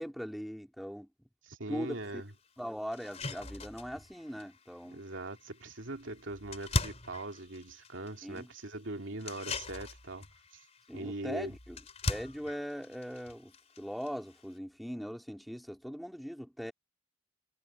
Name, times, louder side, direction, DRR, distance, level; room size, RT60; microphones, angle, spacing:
voice 1, 0.0-1.3 1.7-2.2 2.6-5.0 8.2-8.5 10.9-11.8 12.1-16.7, equal, ahead, 2.6 m, -40 dB
voice 2, 1.4-2.3 4.8-10.2 10.9-11.6, right 2 dB, 75° right, 2.8 m, -41 dB
sound 1, 1.9-2.0 2.5-2.6 2.9-14.6, left 2 dB, 35° left, 3.4 m, -41 dB
head